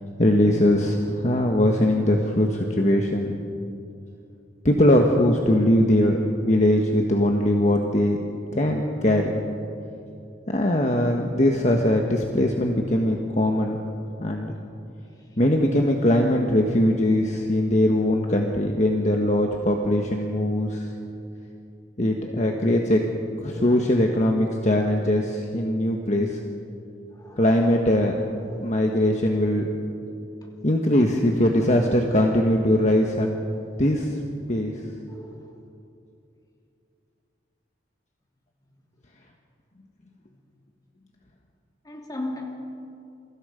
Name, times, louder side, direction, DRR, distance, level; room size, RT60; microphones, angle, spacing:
voice 1, 0.2-3.3 4.6-8.2 8.5-9.4 10.5-13.8 14.2-14.6 15.4-20.9 22.0-23.0 23.4-26.4 27.4-28.2 28.6-29.7 30.6-33.3 33.8-34.2 34.5-34.7, left 1 dB, 40° left, 2 dB, 1.4 m, -21 dB
voice 2, 27.1-29.0 30.4-30.5 32.1-32.4 33.5-33.7 35.1-35.6 40.3-40.4 41.8-42.6, left 2 dB, 20° left, 0 dB, 3.1 m, -40 dB
28.5 x 23.5 x 5.2 m, 2.6 s
head